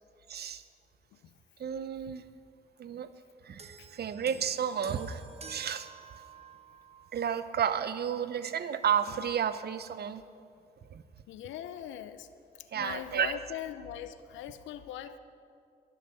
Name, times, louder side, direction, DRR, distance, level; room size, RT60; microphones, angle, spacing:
voice 1, 0.3-0.6 1.6-2.3 2.8-3.1 3.4-5.2 5.5-5.9 7.1-10.2 10.9-11.0 12.7-13.3, right 8 dB, 55° right, 13 dB, 0.8 m, -32 dB
sound 1, 3.6-7.2 8.1-8.2, right 5 dB, 30° right, 1.1 m, -50 dB
voice 2, 11.3-12.3 12.7-15.2, left 10 dB, 75° left, 12 dB, 0.7 m, -40 dB
11.0 x 11.0 x 6.9 m, 2.3 s
hypercardioid pair, 45°, 20 cm